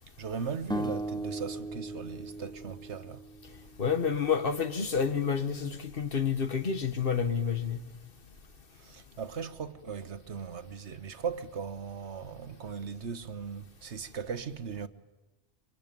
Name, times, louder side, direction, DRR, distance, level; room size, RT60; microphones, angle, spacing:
voice 1, 0.2-3.2 8.7-14.9, right 6 dB, 90° right, 1.4 m, -38 dB
sound 1, 0.7-3.9, right 1 dB, 5° left, 0.7 m, -37 dB
voice 2, 3.8-7.8, left 6 dB, 55° left, 1.6 m, -29 dB
24.5 x 24.0 x 9.1 m
omnidirectional pair, 1.1 m